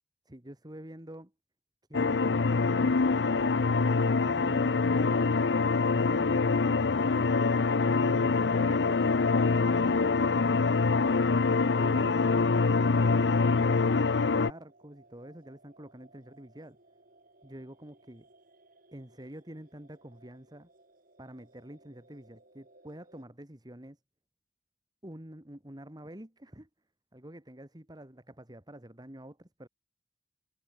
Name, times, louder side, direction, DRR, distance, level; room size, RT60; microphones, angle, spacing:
voice 1, 0.3-1.3 1.9-5.4 5.9-7.3 7.9-9.2 9.7-11.3 11.8-16.8 17.4-18.3 18.9-20.7 21.2-24.0 25.0-26.7 27.1-29.7, right 1 dB, 25° right, 2.2 m, -47 dB
sound 1, 1.9-14.5, left 4 dB, 80° left, 0.7 m, -25 dB
sound 2, 5.0-23.2, right 2 dB, 55° right, 6.9 m, -62 dB
head